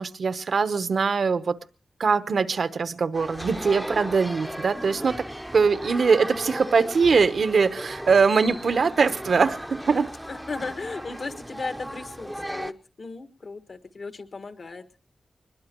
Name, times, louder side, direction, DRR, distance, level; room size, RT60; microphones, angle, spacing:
voice 1, 0.0-1.6 2.0-5.3 5.5-10.1, right 5 dB, 65° right, 1.0 m, -22 dB
sound 1, 3.1-12.7, equal, 5° right, 0.7 m, -36 dB
voice 2, 10.3-14.9, left 3 dB, 55° left, 1.5 m, -36 dB
22.0 x 21.5 x 3.0 m
wide cardioid pair, 85°, 0 cm